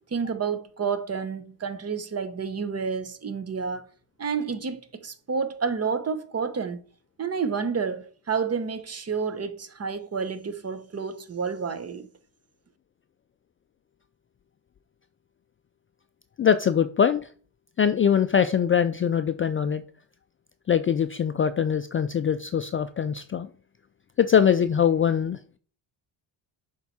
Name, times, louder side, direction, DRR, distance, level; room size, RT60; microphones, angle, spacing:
voice 1, 0.1-3.9 4.2-6.8 7.2-12.1, right 5 dB, 30° right, 0.9 m, -30 dB
voice 2, 16.4-17.3 17.8-19.8 20.7-23.5 24.2-25.6, left 8 dB, 30° left, 0.3 m, -22 dB
6.8 x 4.7 x 4.2 m
cardioid pair, 75°, 48 cm